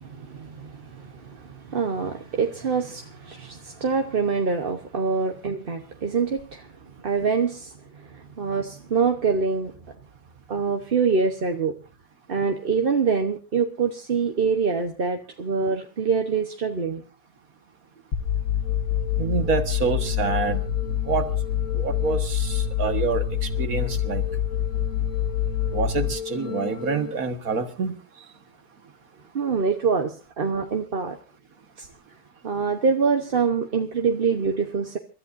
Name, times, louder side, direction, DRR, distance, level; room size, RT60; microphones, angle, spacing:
voice 1, 0.0-6.7 7.0-7.7 8.1-9.7 10.5-11.7 12.3-17.0 29.3-31.2 31.8-31.9 32.4-35.0, right 5 dB, 40° right, 5 dB, 1.1 m, -25 dB
sound 1, 18.1-27.1, left 9 dB, 55° left, 1.6 m, -26 dB
voice 2, 19.2-20.6 21.1-21.3 21.7-24.2 25.7-27.9, right 4 dB, 60° right, 8 dB, 2.0 m, -27 dB
29.5 x 13.5 x 2.6 m, 0.31 s
omnidirectional pair, 1.7 m